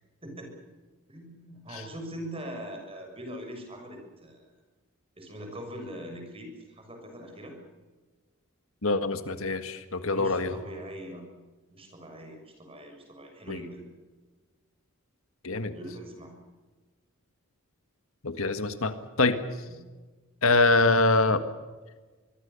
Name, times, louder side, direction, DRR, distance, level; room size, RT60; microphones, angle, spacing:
voice 1, 0.2-0.5 1.1-4.4 5.2-7.6 10.0-11.2 11.7-13.8 15.7-16.4 19.7-19.8, equal, 25° right, 4 dB, 6.8 m, -42 dB
voice 2, 8.8-10.5 13.5-13.6 15.4-15.7 18.2-19.4 20.4-21.4, left 3 dB, 70° left, 9 dB, 1.8 m, -24 dB
25.0 x 22.0 x 7.0 m, 1.3 s
head